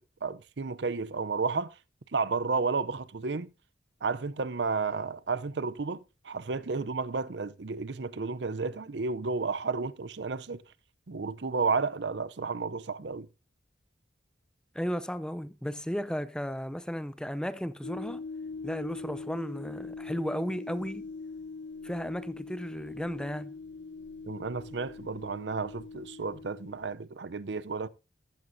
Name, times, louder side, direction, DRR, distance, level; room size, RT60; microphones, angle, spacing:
voice 1, 0.2-1.7 2.1-3.5 4.0-10.6 11.1-13.3 24.3-27.9, right 4 dB, 70° right, 0.7 m, -32 dB
voice 2, 14.7-18.2 18.6-21.1 21.8-23.6, equal, 5° left, 0.6 m, -34 dB
sound 1, 17.8-26.9, left 4 dB, 70° left, 0.5 m, -42 dB
14.0 x 13.0 x 2.7 m
head